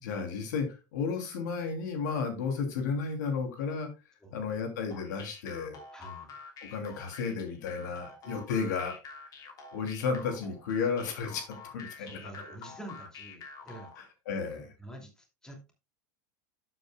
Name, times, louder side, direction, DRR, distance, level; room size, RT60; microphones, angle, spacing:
voice 1, 0.0-3.9 4.3-5.8 6.7-9.0 9.7-11.4 11.7-12.2 14.3-14.7, left 5 dB, 80° left, 5 dB, 2.9 m, -33 dB
sound 1, 4.9-14.1, left 4 dB, 40° left, 3.1 m, -47 dB
voice 2, 5.9-6.3 8.2-8.5 12.0-13.9 14.4-15.7, right 1 dB, 5° left, 2 dB, 2.7 m, -48 dB
11.5 x 7.9 x 2.3 m, 0.27 s
supercardioid pair, 125°, 10 cm